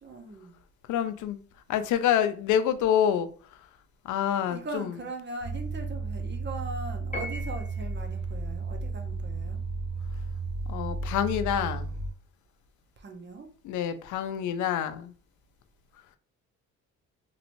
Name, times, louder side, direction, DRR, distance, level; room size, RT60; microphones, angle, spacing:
voice 1, 0.0-0.5 4.5-9.6 13.0-13.5, right 2 dB, 35° right, 0.8 m, -40 dB
voice 2, 0.9-1.4 1.7-3.3 4.0-4.9 10.7-12.0 13.6-15.1, left 9 dB, 80° left, 0.5 m, -27 dB
sound 1, 5.4-12.1, right 3 dB, 75° right, 1.1 m, -33 dB
Piano, 7.1-8.0, left 2 dB, 25° left, 0.9 m, -38 dB
3.0 x 2.9 x 2.6 m
cardioid pair, 90°, 30 cm